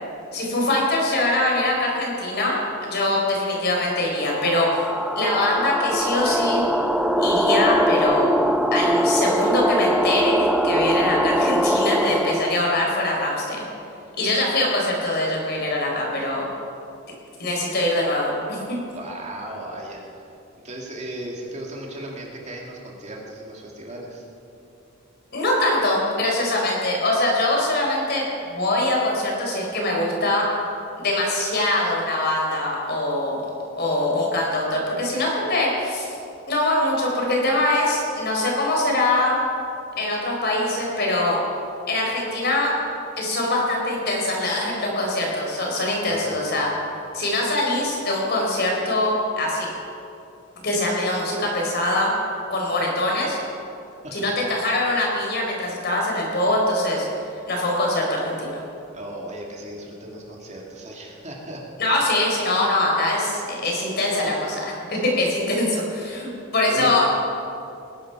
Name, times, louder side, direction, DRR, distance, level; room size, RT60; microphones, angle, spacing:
voice 1, 0.3-4.7 5.2-6.6 7.2-8.3 8.7-13.7 14.2-16.5 17.4-18.8 25.3-28.2 28.5-30.5 31.0-33.4 33.8-36.1 36.5-39.4 40.0-41.4 41.9-42.8 43.2-46.7 47.1-49.7 50.6-52.1 52.5-53.4 54.1-57.1 57.5-58.6 61.8-67.1, left 1 dB, 50° left, -1 dB, 4.0 m, -23 dB
sound 1, 4.3-12.7, equal, 5° right, 0.6 m, -22 dB
voice 2, 18.9-20.2 20.6-24.3 46.0-46.6 54.0-54.3 58.9-61.6 66.6-67.0, right 1 dB, 35° right, -2 dB, 2.4 m, -36 dB
19.5 x 11.0 x 5.8 m, 2.7 s
head